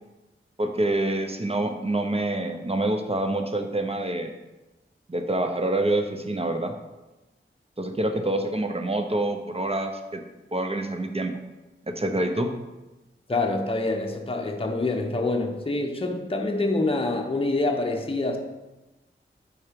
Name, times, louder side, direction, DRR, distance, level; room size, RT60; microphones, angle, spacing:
voice 1, 0.6-4.3 5.1-6.7 7.8-10.2 10.5-11.3 11.9-12.5, right 1 dB, 30° right, 0.7 m, -26 dB
voice 2, 13.3-18.4, left 2 dB, 25° left, 0.8 m, -26 dB
4.8 x 4.3 x 5.1 m
cardioid pair, 40°, 21 cm